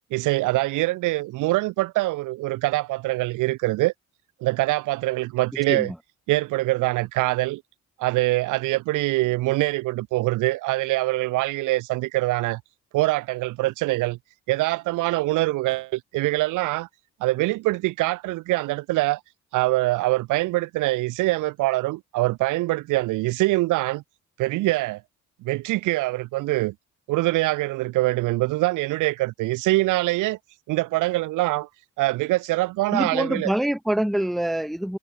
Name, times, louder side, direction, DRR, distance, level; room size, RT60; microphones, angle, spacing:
voice 1, 0.1-3.9 4.4-5.9 6.3-7.6 8.0-12.6 12.9-14.2 14.5-16.9 17.2-19.2 19.5-24.0 24.4-25.0 25.4-26.7 27.1-30.4 30.7-31.7 32.0-33.5, right 19 dB, 90° right, 0.6 m, -24 dB
voice 2, 32.9-35.0, right 1 dB, ahead, 0.7 m, -25 dB
cardioid pair, 90°, 30 cm